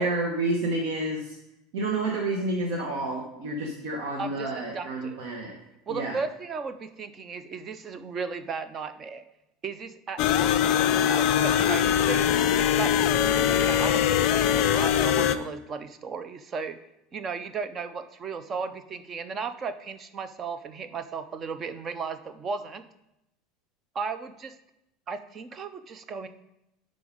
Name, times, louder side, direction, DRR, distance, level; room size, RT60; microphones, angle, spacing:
voice 1, 0.0-1.4 1.7-5.6 5.9-6.2, right 2 dB, 65° right, 0 dB, 1.2 m, -29 dB
voice 2, 4.2-5.2 5.9-9.2 9.6-12.9 13.2-16.8 17.1-22.8 23.9-24.5 25.1-26.3, right 5 dB, 20° right, 11 dB, 0.4 m, -35 dB
sound 1, 10.2-15.4, left 9 dB, 45° left, 0.4 m, -22 dB
10.5 x 3.9 x 5.0 m, 0.86 s
cardioid pair, 175°, 0 cm